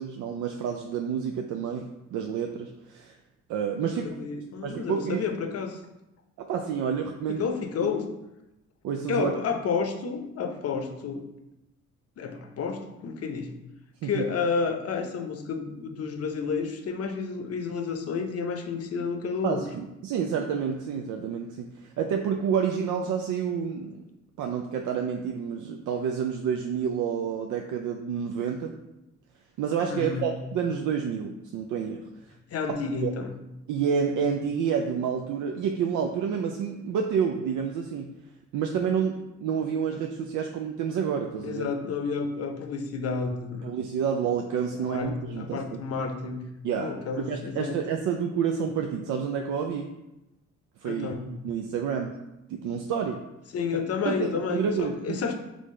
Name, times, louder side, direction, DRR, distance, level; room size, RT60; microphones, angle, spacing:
voice 1, 0.0-3.2 3.5-4.1 4.6-5.2 6.4-7.4 7.8-7.9 8.8-9.3 14.0-14.2 19.4-24.0 24.4-28.7 29.6-32.1 33.0-33.1 33.7-38.1 38.5-41.7 43.6-45.6 46.6-49.9 50.8-52.1 52.5-53.2 54.1-55.2, right 7 dB, 80° right, 3 dB, 0.5 m, -29 dB
voice 2, 3.8-5.8 7.3-8.0 9.1-11.2 12.2-13.5 14.0-19.6 29.9-30.3 32.5-33.3 41.4-43.7 44.7-46.4 46.8-47.8 50.8-51.3 53.5-55.4, left 5 dB, 55° left, 6 dB, 0.6 m, -30 dB
3.8 x 3.3 x 3.7 m, 0.92 s
cardioid pair, 90°, 30 cm